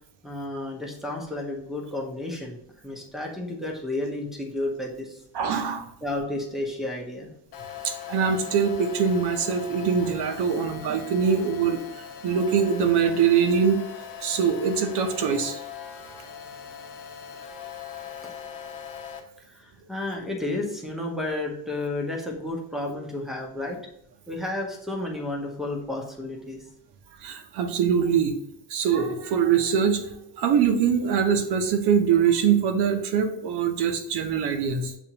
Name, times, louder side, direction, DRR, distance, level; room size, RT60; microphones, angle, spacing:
voice 1, 0.2-2.6 2.8-5.2 6.0-7.3 18.2-18.3 19.4-23.8 24.3-26.7, left 2 dB, ahead, 0 dB, 0.6 m, -32 dB
voice 2, 5.3-5.8 7.8-11.8 12.2-13.9 14.2-15.6 27.2-28.3 28.7-34.9, right 7 dB, 65° right, 6 dB, 0.7 m, -23 dB
sound 1, 7.5-19.2, left 9 dB, 80° left, 0.9 m, -40 dB
7.0 x 2.5 x 2.8 m, 0.73 s
cardioid pair, 170°, 42 cm